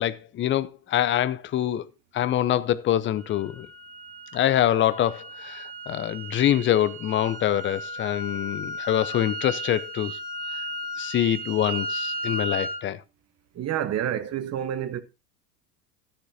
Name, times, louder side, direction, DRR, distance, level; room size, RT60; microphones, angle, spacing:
voice 1, 0.0-1.9 2.1-3.7 4.3-10.2 11.0-13.0, left 11 dB, 25° left, 0.7 m, -25 dB
sound 1, 3.2-12.8, right 1 dB, 15° right, 2.2 m, -35 dB
voice 2, 13.5-15.0, right 10 dB, 30° right, 1.2 m, -28 dB
13.0 x 10.0 x 2.8 m
hypercardioid pair, 85°, 48 cm